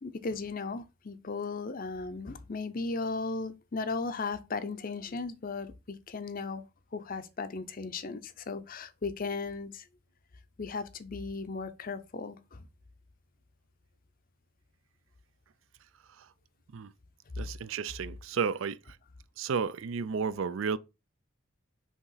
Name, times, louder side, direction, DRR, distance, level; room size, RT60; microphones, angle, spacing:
voice 1, 0.0-6.6 6.9-9.8 10.6-12.6, left 4 dB, 40° left, 0.6 m, -36 dB
voice 2, 17.4-19.0 19.4-20.8, right 6 dB, 65° right, 0.4 m, -32 dB
6.4 x 2.9 x 5.6 m
head